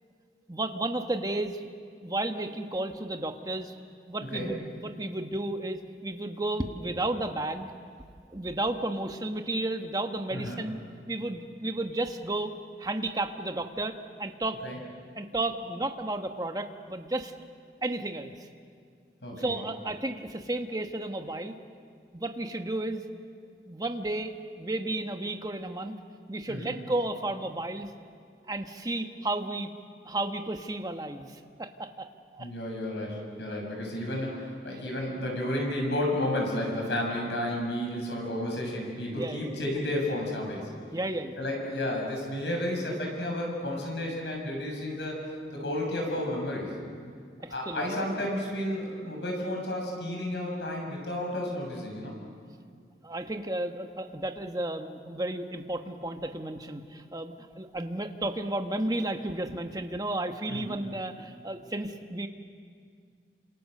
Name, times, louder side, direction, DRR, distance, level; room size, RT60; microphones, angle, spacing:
voice 1, 0.5-1.6 2.0-3.7 4.1-7.7 8.3-10.8 11.1-12.5 12.8-14.6 15.2-17.3 17.8-18.3 19.3-21.6 22.1-23.0 23.7-25.9 26.3-27.9 28.5-29.7 30.0-31.3 31.6-32.1 32.3-32.5 34.7-34.9 39.1-39.6 40.9-41.4 47.4-48.1 53.0-62.3, right 2 dB, 20° right, 6 dB, 1.3 m, -33 dB
voice 2, 10.3-10.6 14.6-14.8 19.2-19.6 26.5-26.8 32.4-40.7 41.4-45.2 45.5-46.7 47.5-52.1 60.5-60.8, left 1 dB, 80° left, 0 dB, 7.0 m, -32 dB
29.0 x 27.0 x 6.7 m, 2.2 s
head